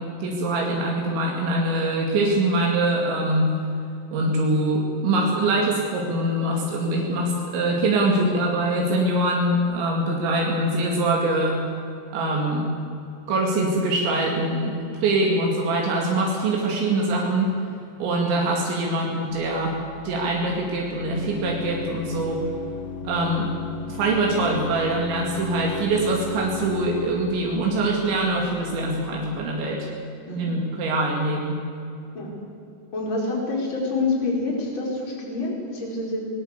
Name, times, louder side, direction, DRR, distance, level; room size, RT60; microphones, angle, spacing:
voice 1, 0.0-3.5 4.1-11.6 12.1-12.7 13.3-17.5 18.0-19.8 20.0-22.4 23.0-23.5 23.9-29.9 30.4-31.6, right 2 dB, 80° right, -1 dB, 4.7 m, -23 dB
Organ, 19.3-29.4, left 5 dB, 70° left, 7.7 m, -37 dB
voice 2, 32.9-36.3, left 3 dB, 25° left, -2 dB, 5.1 m, -27 dB
20.5 x 19.5 x 8.2 m, 2.5 s
omnidirectional pair, 5.2 m